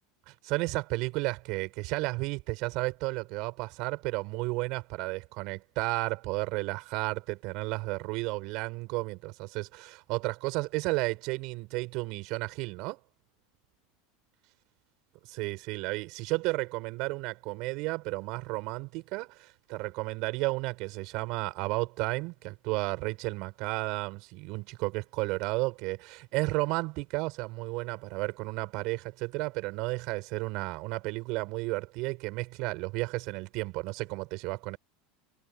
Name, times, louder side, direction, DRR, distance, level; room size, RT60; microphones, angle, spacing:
voice 1, 0.3-13.0 15.3-34.8, right 24 dB, 60° right, 6.1 m, -33 dB
supercardioid pair, 130°, 0 cm